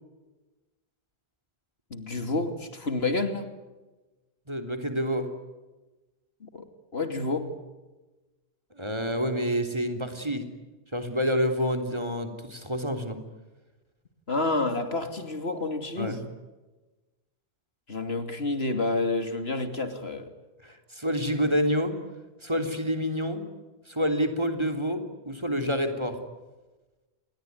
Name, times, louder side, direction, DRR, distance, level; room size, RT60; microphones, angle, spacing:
voice 1, 1.9-3.5 6.4-6.6 6.9-7.5 14.3-16.2 17.9-20.3, left 2 dB, 65° left, 8 dB, 3.0 m, -29 dB
voice 2, 4.5-5.3 8.8-10.5 10.9-13.2 16.0-16.2 20.6-21.9 22.4-23.4 23.9-26.2, equal, 25° right, 6 dB, 3.5 m, -28 dB
28.5 x 22.0 x 9.6 m, 1.2 s
omnidirectional pair, 1.1 m